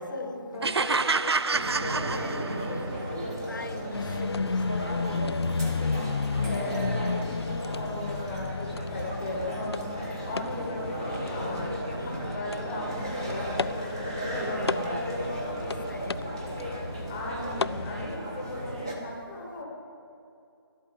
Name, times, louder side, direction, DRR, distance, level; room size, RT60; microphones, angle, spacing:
voice 1, 0.0-0.7 6.4-11.7 12.0-15.3 17.1-19.6, left 1 dB, 5° left, 1.0 m, -37 dB
voice 2, 0.6-3.0 3.5-5.4 12.0-12.4 15.9-16.4, left 3 dB, 50° left, 0.8 m, -42 dB
sound 1, 0.6-2.9, right 4 dB, 90° right, 0.5 m, -28 dB
sound 2, 1.5-18.9, equal, 10° right, 0.8 m, -35 dB
sound 3, 3.9-18.2, left 5 dB, 85° left, 0.4 m, -34 dB
12.0 x 8.3 x 9.4 m
figure-of-eight pair, 175°, 13 cm